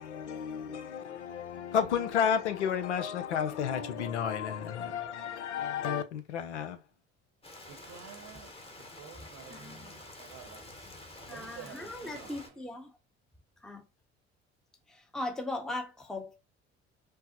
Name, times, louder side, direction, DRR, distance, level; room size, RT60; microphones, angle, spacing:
voice 1, 0.0-6.8, left 8 dB, 85° left, 0.6 m, -32 dB
Rain, 7.4-12.5, left 2 dB, 15° left, 1.0 m, -49 dB
voice 2, 7.7-8.5 8.9-12.4, right 8 dB, 50° right, 0.8 m, -50 dB
voice 3, 9.5-9.9 11.3-12.9 13.6-13.8 14.9-16.4, left 2 dB, ahead, 0.7 m, -39 dB
5.3 x 2.0 x 2.9 m
hypercardioid pair, 60°, 34 cm